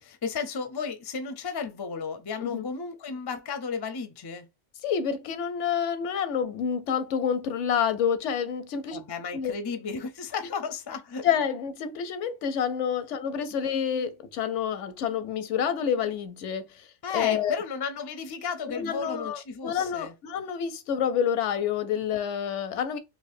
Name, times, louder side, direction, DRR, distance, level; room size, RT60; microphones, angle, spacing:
voice 1, 0.0-4.5 8.9-11.3 17.0-20.1, left 5 dB, 35° left, 0.4 m, -34 dB
voice 2, 4.8-9.0 9.3-9.5 11.2-16.9 17.1-17.6 18.7-23.0, left 8 dB, 80° left, 0.9 m, -28 dB
4.0 x 2.5 x 2.5 m
omnidirectional pair, 1.2 m